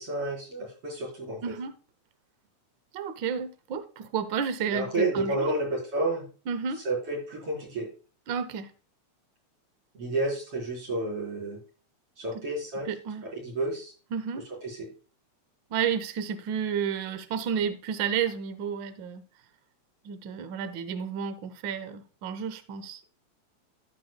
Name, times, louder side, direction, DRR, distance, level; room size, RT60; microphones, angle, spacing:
voice 1, 0.0-1.5 4.7-6.3 6.8-7.9 9.9-11.6 12.2-12.9 13.2-13.9 14.6-14.9, right 2 dB, 50° right, 5.5 m, -30 dB
voice 2, 2.9-5.6 6.5-6.8 8.3-8.7 12.3-12.4 12.8-13.3 14.1-14.4 15.7-19.2 20.0-23.0, right 7 dB, 75° right, 1.1 m, -31 dB
14.5 x 6.3 x 2.3 m
omnidirectional pair, 3.4 m